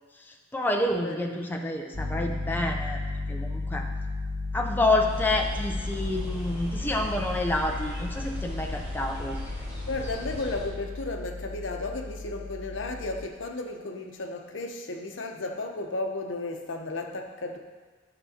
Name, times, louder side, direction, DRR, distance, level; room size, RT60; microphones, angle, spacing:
voice 1, 0.2-3.0 3.3-3.9 4.5-9.4, left 2 dB, 10° left, 1 dB, 0.5 m, -28 dB
voice 2, 1.0-1.4 9.9-17.6, left 2 dB, 70° left, 3 dB, 0.9 m, -34 dB
Piano, 1.9-13.3, left 3 dB, 75° right, 2.0 m, -34 dB
sound 1, 5.1-10.7, left 1 dB, 10° right, 2.7 m, -39 dB
12.5 x 6.9 x 2.8 m, 1.4 s
head